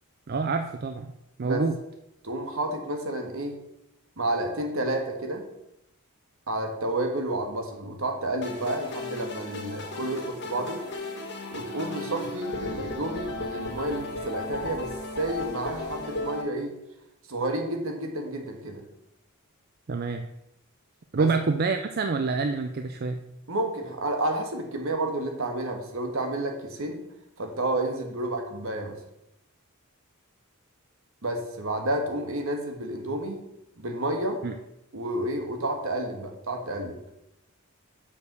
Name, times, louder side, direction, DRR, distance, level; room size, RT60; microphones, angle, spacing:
voice 1, 0.3-1.1 1.4-1.7 19.9-20.3 21.1-23.2 34.4-34.5, right 4 dB, 45° right, 7 dB, 0.5 m, -27 dB
voice 2, 2.2-3.6 4.2-5.4 6.5-10.8 11.5-14.9 15.2-16.7 17.3-18.8 21.1-21.3 23.5-27.0 27.4-28.9 31.2-33.4 33.8-34.4 34.9-37.0, right 1 dB, 65° right, 4 dB, 1.5 m, -30 dB
sound 1, 8.4-16.4, left 2 dB, 55° left, 1.8 m, -35 dB
7.0 x 5.0 x 6.7 m, 0.84 s
head